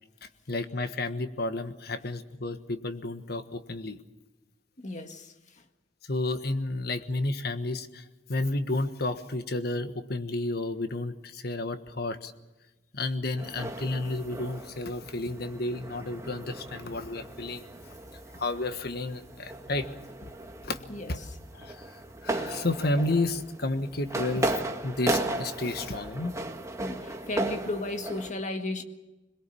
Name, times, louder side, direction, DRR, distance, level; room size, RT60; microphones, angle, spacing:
voice 1, 0.2-4.0 6.1-8.0 8.3-12.3 12.9-17.7 18.3-19.9 20.2-20.3 20.6-20.8 21.1-21.2 21.5-21.9 22.2-26.3, left 2 dB, 60° left, 1.4 m, -31 dB
voice 2, 4.8-5.3 20.9-21.3 26.8-28.8, left 2 dB, 40° left, 1.7 m, -34 dB
sound 1, 13.4-28.3, right 2 dB, 15° right, 1.5 m, -36 dB
22.0 x 22.0 x 7.1 m
head